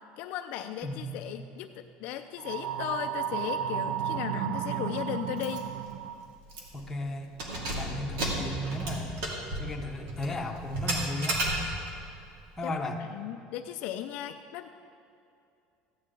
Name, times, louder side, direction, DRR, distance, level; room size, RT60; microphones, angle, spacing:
voice 1, 0.2-5.7 12.6-12.8 13.1-14.7, left 11 dB, 50° left, 6 dB, 0.4 m, -36 dB
voice 2, 0.8-1.4 6.8-7.3 7.8-9.3 9.6-11.4 12.6-13.0, left 1 dB, 10° left, 1 dB, 0.8 m, -35 dB
sound 1, 2.4-6.4, right 9 dB, 60° right, 0.4 m, -33 dB
Keys jangling, 5.4-5.6 5.9-6.0 6.5-6.9 7.3-12.0, right 1 dB, 80° right, 2.3 m, -33 dB
15.0 x 9.8 x 3.8 m, 2.5 s
cardioid pair, 175°, 3 cm